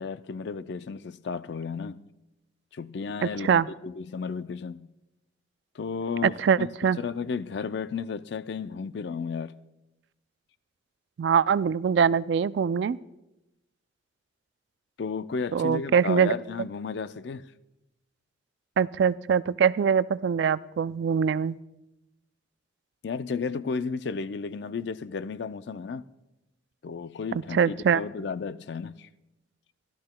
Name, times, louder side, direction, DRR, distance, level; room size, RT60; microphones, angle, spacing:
voice 1, 0.0-2.1 2.7-4.9 5.8-6.7 7.0-9.5 15.0-17.5 23.0-26.1 26.8-29.1, left 5 dB, 60° left, 0.4 m, -33 dB
voice 2, 6.2-7.0 11.2-13.0 15.5-16.3 18.8-21.6 27.5-28.0, right 7 dB, 65° right, 0.3 m, -23 dB
25.0 x 12.5 x 2.2 m
head